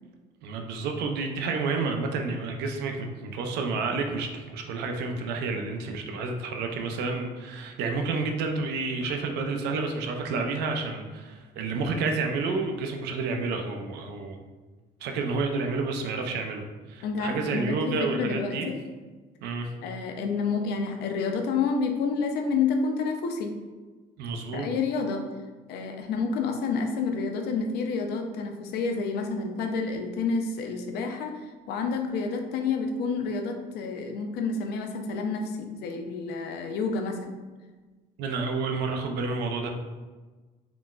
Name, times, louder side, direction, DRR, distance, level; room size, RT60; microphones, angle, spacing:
voice 1, 0.4-14.4 15.0-16.6 16.9-18.7 19.4-19.7 24.2-24.7 38.2-39.7, right 4 dB, 80° right, 4 dB, 0.4 m, -30 dB
voice 2, 17.0-18.8 19.8-23.5 24.5-25.2 25.7-31.3 31.7-37.4, left 4 dB, 75° left, 4 dB, 0.4 m, -29 dB
3.8 x 2.1 x 2.3 m, 1.3 s
cardioid pair, 110°, 17 cm